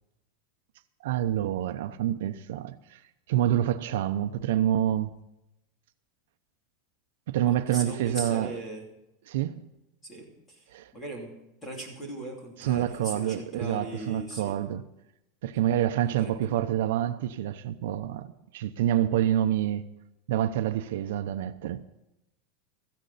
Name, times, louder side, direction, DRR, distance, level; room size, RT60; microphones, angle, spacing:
voice 1, 1.0-3.0 3.3-5.1 7.3-8.5 9.3-9.6 10.7-10.9 12.6-14.8 15.4-19.8 20.3-21.8, right 11 dB, 65° right, 0.7 m, -27 dB
voice 2, 7.4-8.8 10.0-10.7 10.9-11.3 11.6-14.6 16.1-16.5, right 1 dB, 10° left, 3.0 m, -39 dB
16.5 x 14.0 x 4.1 m
supercardioid pair, 180°, 0 cm